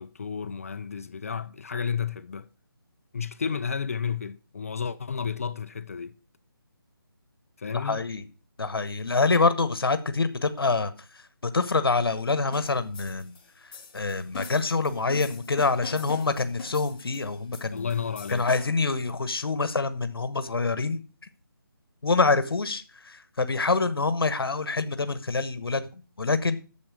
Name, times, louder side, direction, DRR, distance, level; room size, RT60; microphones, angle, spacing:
voice 1, 0.0-2.5 3.1-6.2 7.6-8.0 17.7-18.5, left 6 dB, 40° left, 0.5 m, -32 dB
voice 2, 7.7-8.2 8.6-13.3 13.6-17.9 18.3-21.0 22.0-26.6, left 3 dB, 80° left, 1.1 m, -26 dB
sound 1, 12.5-18.9, left 5 dB, 20° left, 1.7 m, -43 dB
8.7 x 7.3 x 6.1 m
figure-of-eight pair, 165°, 12 cm